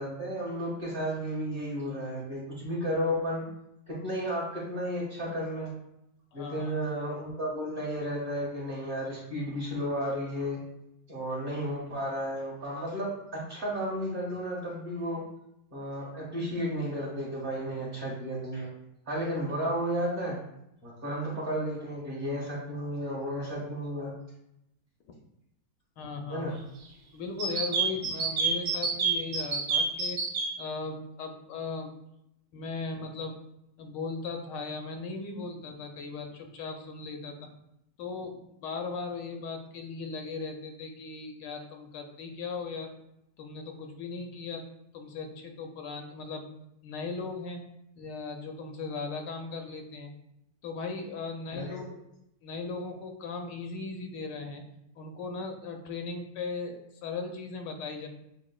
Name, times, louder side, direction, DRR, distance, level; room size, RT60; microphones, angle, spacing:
voice 1, 0.0-3.4 3.9-5.7 6.3-10.6 11.1-15.2 15.7-18.7 19.1-20.4 20.8-24.1 26.3-26.6 51.5-51.9, equal, 30° right, -6 dB, 1.4 m, -33 dB
voice 2, 6.3-6.8 26.0-26.5 27.1-30.2 30.6-31.9 32.5-33.3 33.8-37.5 38.0-42.9 43.4-44.6 44.9-46.5 46.8-47.6 48.0-50.1 50.6-52.0 52.4-54.6 54.9-58.1, left 4 dB, 80° left, 4 dB, 1.2 m, -37 dB
sound 1, 27.4-30.5, right 4 dB, 60° right, 1.2 m, -27 dB
7.1 x 2.5 x 2.2 m, 0.82 s
omnidirectional pair, 1.9 m